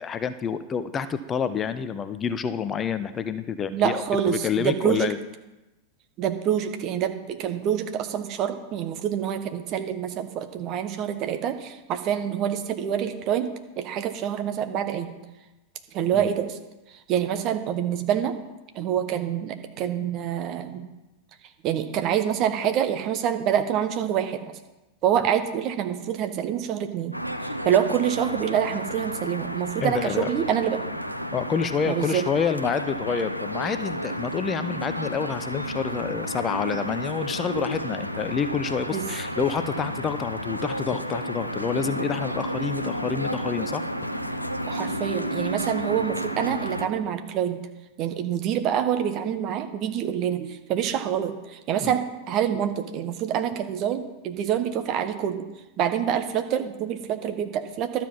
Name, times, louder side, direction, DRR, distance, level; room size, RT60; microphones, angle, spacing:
voice 1, 0.0-5.2 16.1-16.3 29.8-30.3 31.3-43.8 51.8-52.0, left 6 dB, 25° left, 12 dB, 0.6 m, -28 dB
voice 2, 3.7-5.1 6.2-13.5 13.8-15.1 15.9-16.6 16.9-18.4 18.7-20.9 21.6-24.5 25.0-27.2 27.4-30.8 31.8-32.3 38.9-39.1 44.7-47.6 48.0-55.5 55.8-58.0, right 9 dB, 40° right, 8 dB, 1.1 m, -26 dB
sound 1, 27.1-46.9, equal, 90° left, 0.6 m, -32 dB
12.5 x 7.4 x 5.7 m, 1.0 s
figure-of-eight pair, 90°, 0 cm